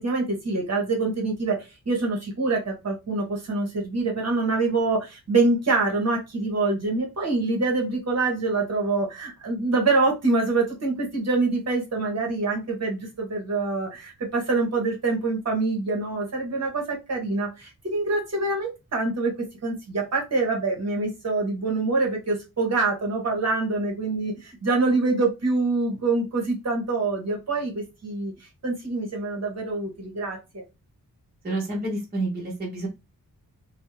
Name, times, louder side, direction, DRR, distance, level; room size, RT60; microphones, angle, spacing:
voice 1, 0.0-1.6 1.9-19.3 19.6-28.3 28.6-30.6, right 3 dB, 45° right, 0 dB, 0.9 m, -25 dB
voice 2, 31.4-32.9, right 2 dB, 25° right, -4 dB, 0.7 m, -29 dB
2.5 x 2.1 x 3.0 m, 0.25 s
wide cardioid pair, 175°, 36 cm